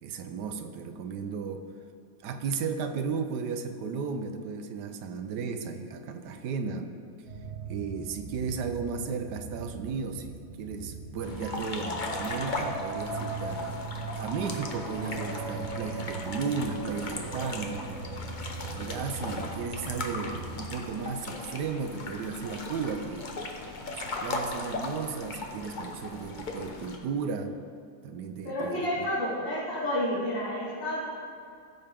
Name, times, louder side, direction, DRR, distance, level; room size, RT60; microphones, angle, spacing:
voice 1, 0.0-1.6 2.2-6.9 7.7-13.8 14.2-17.9 18.7-23.3 23.9-27.5 28.0-29.1, right 5 dB, 65° right, 7 dB, 1.2 m, -34 dB
sound 1, 7.3-20.7, right 3 dB, 40° right, 1.4 m, -39 dB
sound 2, 11.2-27.0, left 2 dB, 45° left, 0.6 m, -38 dB
voice 2, 28.4-31.0, left 1 dB, 70° left, -9 dB, 2.7 m, -30 dB
16.0 x 6.7 x 3.6 m, 2.4 s
omnidirectional pair, 2.1 m